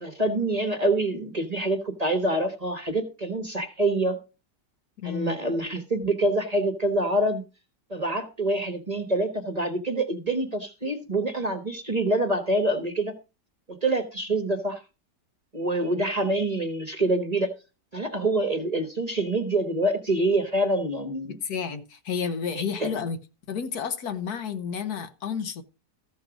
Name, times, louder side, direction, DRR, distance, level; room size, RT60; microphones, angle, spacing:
voice 1, 0.0-4.2 5.0-7.4 7.9-13.1 13.7-14.8 15.5-17.5 17.9-21.4 22.5-23.0, right 1 dB, 25° right, 1.2 m, -26 dB
voice 2, 5.0-5.4 21.3-23.2 23.5-25.6, left 6 dB, 70° left, 1.4 m, -31 dB
14.0 x 6.5 x 4.9 m
omnidirectional pair, 1.8 m